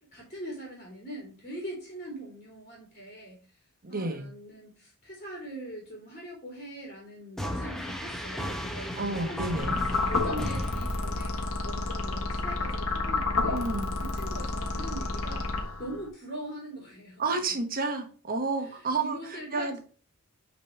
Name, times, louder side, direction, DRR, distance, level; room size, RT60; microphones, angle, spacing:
voice 1, 0.1-3.4 3.9-13.6 14.0-15.5 15.8-17.2 19.0-19.8, right 1 dB, 35° left, -3 dB, 3.4 m, -42 dB
voice 2, 3.8-4.3 9.0-9.8 13.5-13.9 17.2-19.8, right 3 dB, 45° right, 5 dB, 1.2 m, -31 dB
sound 1, 7.4-11.7, equal, ahead, 0.9 m, -35 dB
sound 2, 9.6-16.1, left 3 dB, 80° left, 1.4 m, -30 dB
9.0 x 4.2 x 3.3 m, 0.40 s
head